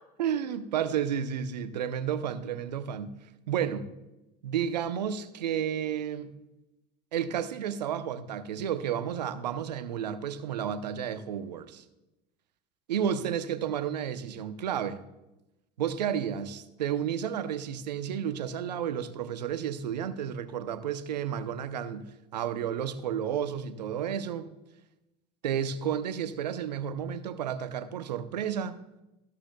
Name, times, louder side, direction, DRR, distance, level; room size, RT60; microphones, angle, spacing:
voice 1, 0.2-3.2 3.5-3.9 4.4-6.3 7.1-11.8 12.9-15.0 15.8-24.5 25.4-28.8, right 9 dB, 85° right, 0.8 m, -32 dB
13.5 x 13.0 x 2.3 m
hypercardioid pair, 75°, 21 cm